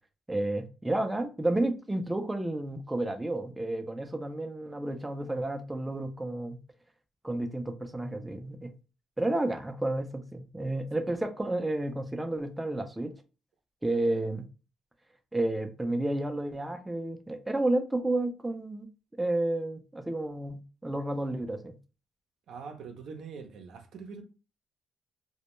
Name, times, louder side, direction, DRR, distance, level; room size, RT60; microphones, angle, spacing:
voice 1, 0.3-6.6 7.2-8.7 9.2-13.1 13.8-14.5 15.3-18.9 19.2-21.8, right 1 dB, 10° right, 0.4 m, -31 dB
voice 2, 22.5-24.2, right 5 dB, 75° right, 0.5 m, -43 dB
2.1 x 2.1 x 2.9 m
cardioid pair, 90°, 0 cm